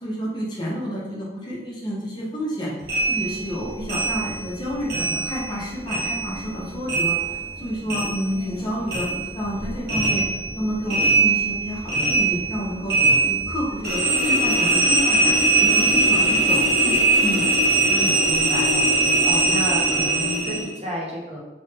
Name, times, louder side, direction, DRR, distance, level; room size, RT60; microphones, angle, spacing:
voice 1, 0.0-2.7 3.1-10.3 10.6-13.0 13.2-17.5, equal, 25° left, -5 dB, 0.6 m, -29 dB
sound 1, 2.9-5.6 5.9-8.6 8.9-20.7, right 2 dB, 60° right, 0.9 m, -21 dB
voice 2, 17.9-18.9 19.2-21.4, equal, 35° right, -4 dB, 0.6 m, -31 dB
3.0 x 2.1 x 3.2 m, 1.1 s
head